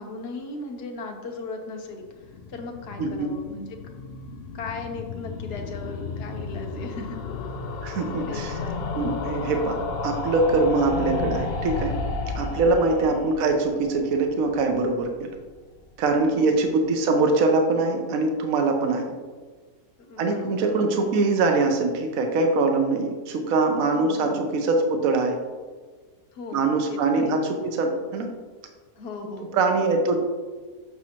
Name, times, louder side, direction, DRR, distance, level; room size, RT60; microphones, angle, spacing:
voice 1, 0.0-2.0 2.5-3.7 4.5-7.2 8.3-8.9 12.6-13.0 16.3-16.6 20.0-20.5 24.0-24.5 26.3-27.4 28.9-29.5, left 3 dB, 50° left, 3 dB, 1.0 m, -37 dB
sound 1, 2.1-15.1 15.4-15.5 15.7-15.8 16.0-16.1, left 3 dB, 75° left, 0.5 m, -33 dB
voice 2, 3.0-3.3 7.8-8.6 8.9-9.8 10.0-11.9 12.3-15.3 16.0-19.0 20.2-25.4 26.5-28.3 29.5-30.2, right 3 dB, 65° right, 4 dB, 1.2 m, -23 dB
7.1 x 6.1 x 2.9 m, 1.4 s
omnidirectional pair, 1.6 m